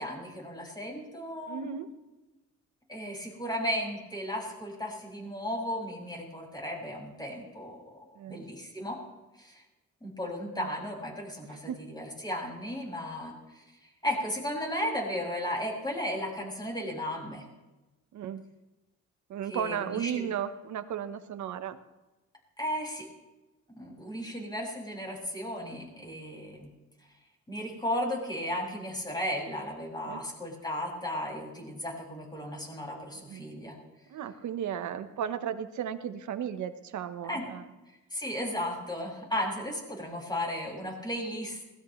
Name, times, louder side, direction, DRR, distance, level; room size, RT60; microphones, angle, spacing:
voice 1, 0.0-1.7 2.9-9.0 9.4-9.6 10.0-13.6 14.0-17.4 19.5-20.2 22.6-23.1 23.7-26.7 27.5-33.8 37.2-37.4 38.1-41.6, equal, 15° left, -1 dB, 6.4 m, -35 dB
voice 2, 1.5-1.9 8.1-8.4 10.5-10.7 11.4-11.8 18.1-18.4 19.3-21.8 30.1-30.2 33.3-33.4 34.1-37.6, right 9 dB, 70° right, 10 dB, 1.2 m, -35 dB
21.0 x 19.5 x 3.3 m, 1.1 s
cardioid pair, 90°, 30 cm